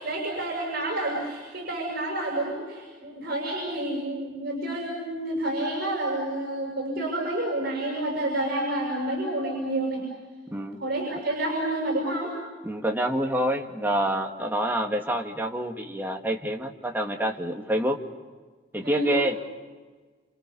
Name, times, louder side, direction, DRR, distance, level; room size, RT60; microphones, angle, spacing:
voice 1, 0.0-10.0 10.8-12.3 18.8-19.2, right 1 dB, 55° right, -1 dB, 7.1 m, -29 dB
voice 2, 12.6-18.0 18.7-19.4, right 1 dB, 10° right, 1 dB, 2.2 m, -27 dB
29.0 x 29.0 x 5.6 m, 1.4 s
head